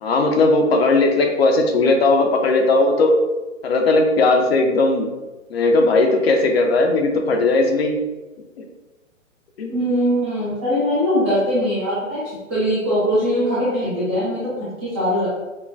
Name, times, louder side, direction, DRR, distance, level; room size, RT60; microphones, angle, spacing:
voice 1, 0.0-3.1 3.6-5.1 5.5-8.0 8.6-8.7 9.6-9.8, left 2 dB, 50° left, 3 dB, 0.6 m, -17 dB
voice 2, 9.7-12.2 12.5-15.3, equal, 10° right, -10 dB, 0.4 m, -21 dB
5.3 x 2.2 x 2.5 m, 1.1 s
figure-of-eight pair, 125°, 40 cm